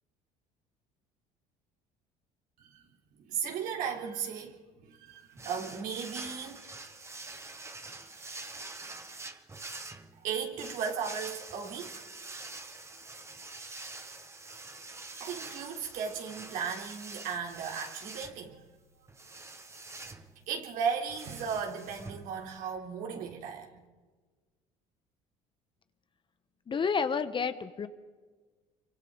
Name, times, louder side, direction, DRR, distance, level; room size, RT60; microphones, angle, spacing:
voice 1, 3.2-6.6 10.2-11.9 15.2-18.6 19.0-19.1 20.5-23.7, right 6 dB, 70° right, 3.5 m, -36 dB
sound 1, 5.4-22.8, right 3 dB, 20° right, 1.7 m, -46 dB
voice 2, 26.7-27.9, left 5 dB, 35° left, 1.2 m, -30 dB
26.5 x 24.5 x 4.0 m
supercardioid pair, 80°, 15 cm